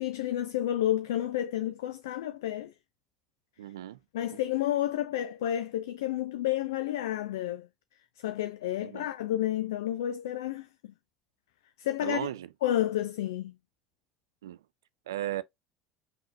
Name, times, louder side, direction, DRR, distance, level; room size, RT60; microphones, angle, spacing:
voice 1, 0.0-2.7 4.1-7.7 8.2-10.9 11.8-12.3 12.6-13.5, left 12 dB, 65° left, 0.3 m, -30 dB
voice 2, 3.6-4.0 8.8-9.1 12.0-12.5 14.4-14.6 15.1-15.4, right 13 dB, 70° right, 0.4 m, -35 dB
5.5 x 2.8 x 2.4 m
figure-of-eight pair, 65°, 2 cm